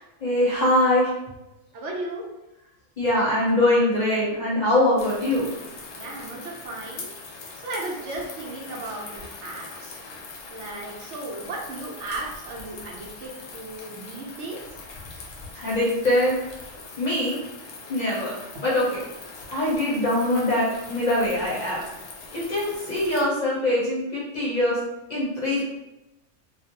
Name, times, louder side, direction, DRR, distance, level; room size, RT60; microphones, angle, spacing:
voice 1, 0.2-1.1 3.0-5.5 15.5-16.4 17.0-17.4 17.9-18.3 18.6-19.0 19.5-21.8 22.3-24.8 25.1-25.6, left 1 dB, 45° left, -6 dB, 0.7 m, -23 dB
voice 2, 1.7-2.2 5.9-7.1 7.6-10.0 10.5-14.8 18.5-18.6, right 2 dB, 75° right, -1 dB, 0.9 m, -35 dB
sound 1, 5.0-23.2, left 3 dB, 70° left, 0.8 m, -42 dB
2.4 x 2.1 x 2.8 m, 0.97 s
omnidirectional pair, 1.2 m